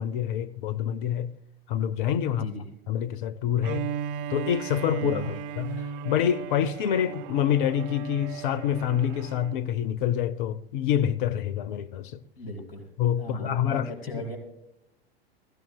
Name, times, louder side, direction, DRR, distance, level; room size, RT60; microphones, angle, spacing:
voice 1, 0.0-1.3 1.7-2.5 2.9-3.9 4.3-12.2 13.0-13.9 14.1-14.2, left 9 dB, 55° left, 0.7 m, -27 dB
voice 2, 2.3-2.7 5.0-5.3 12.4-12.8 13.2-14.4, equal, 75° left, 5.4 m, -37 dB
Bowed string instrument, 3.6-9.6, right 9 dB, 35° right, 0.4 m, -36 dB
22.0 x 15.5 x 2.3 m
figure-of-eight pair, 85°, 30 cm